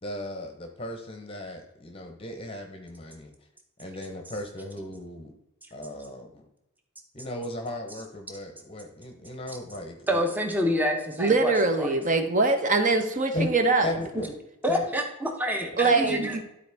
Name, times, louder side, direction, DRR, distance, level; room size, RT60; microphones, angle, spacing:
voice 1, 0.0-3.3 3.8-5.3 5.7-6.4 7.1-10.2 13.3-13.5 13.8-14.4 14.7-14.9 15.8-16.3, left 1 dB, 25° left, 4 dB, 0.8 m, -36 dB
voice 2, 10.1-11.5 11.8-12.0 14.6-16.4, equal, 10° right, 3 dB, 0.8 m, -27 dB
voice 3, 11.2-13.9 15.8-16.4, right 3 dB, 35° right, 6 dB, 0.9 m, -23 dB
12.5 x 4.2 x 3.5 m, 0.86 s
head